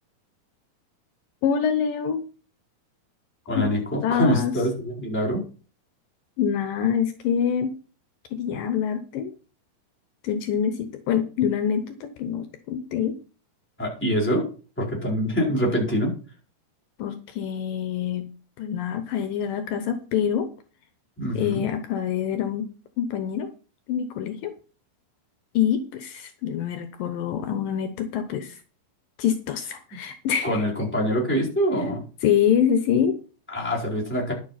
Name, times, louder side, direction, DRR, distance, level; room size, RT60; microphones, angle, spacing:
voice 1, 1.4-2.2 3.6-3.7 4.0-4.5 6.4-7.7 8.3-9.3 10.2-13.2 17.0-18.3 18.6-20.5 21.3-22.7 23.0-23.5 23.9-24.5 25.5-28.6 29.2-30.6 32.2-33.2, left 8 dB, 75° left, 9 dB, 2.5 m, -25 dB
voice 2, 3.5-5.4 13.8-14.5 14.8-16.1 21.2-21.7 30.4-32.0 33.5-34.3, equal, 5° left, -3 dB, 4.1 m, -24 dB
11.5 x 7.1 x 5.8 m, 0.37 s
omnidirectional pair, 4.1 m